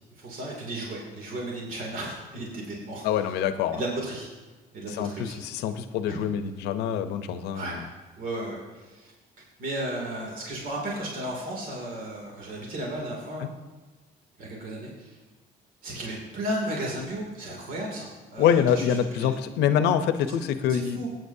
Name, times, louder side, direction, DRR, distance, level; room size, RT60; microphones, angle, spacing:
voice 1, 0.2-3.3 3.7-4.3 4.7-5.4 6.0-6.1 7.5-9.1 9.6-13.5 14.4-15.2 15.8-19.4 20.7-21.1, right 1 dB, 55° right, -2 dB, 2.6 m, -34 dB
voice 2, 3.0-3.8 4.9-7.8 13.4-13.5 18.4-21.0, left 8 dB, 85° left, 10 dB, 0.8 m, -25 dB
18.0 x 9.2 x 2.7 m, 1.2 s
cardioid pair, 110°, 17 cm